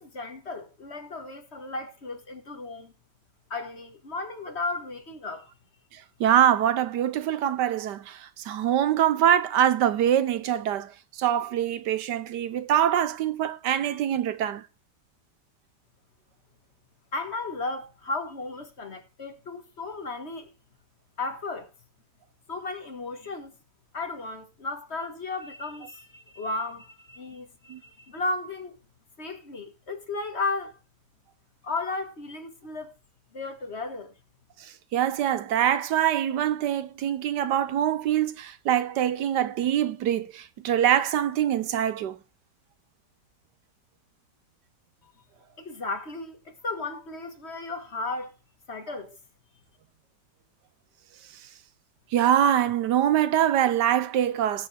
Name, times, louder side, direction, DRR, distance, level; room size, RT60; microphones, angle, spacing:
voice 1, 0.0-2.9 3.5-5.5 17.1-20.5 21.2-21.7 22.5-23.5 23.9-28.8 29.2-30.8 31.6-33.0 33.3-34.1 45.6-48.3 48.7-49.1, left 3 dB, 40° left, 1.8 m, -34 dB
voice 2, 5.9-14.6 27.7-27.8 34.6-42.2 52.1-54.7, right 10 dB, 80° right, 1.4 m, -24 dB
18.5 x 7.2 x 3.4 m
omnidirectional pair, 1.8 m